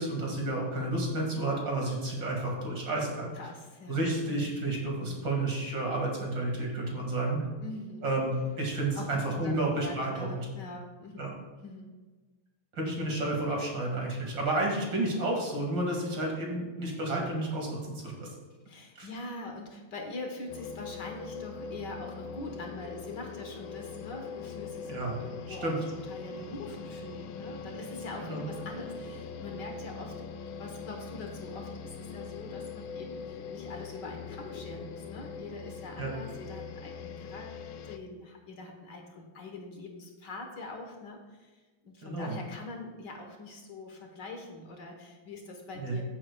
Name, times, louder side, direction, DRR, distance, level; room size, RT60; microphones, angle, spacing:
voice 1, 0.0-3.3 3.9-7.4 8.0-10.4 11.2-11.3 12.8-18.3 19.0-19.1 24.8-25.2 25.5-25.8 28.2-28.5 36.0-36.1 42.0-42.3 45.8-46.0, right 2 dB, 60° right, -1 dB, 2.7 m, -31 dB
voice 2, 3.3-4.6 5.0-5.3 7.6-8.1 9.0-11.3 11.6-12.0 18.7-24.9 25.2-37.6 37.9-46.0, left 2 dB, 60° left, 2 dB, 1.8 m, -43 dB
sound 1, 20.5-38.0, left 5 dB, 80° left, 1.4 m, -42 dB
15.0 x 7.6 x 2.3 m, 1.2 s
omnidirectional pair, 2.2 m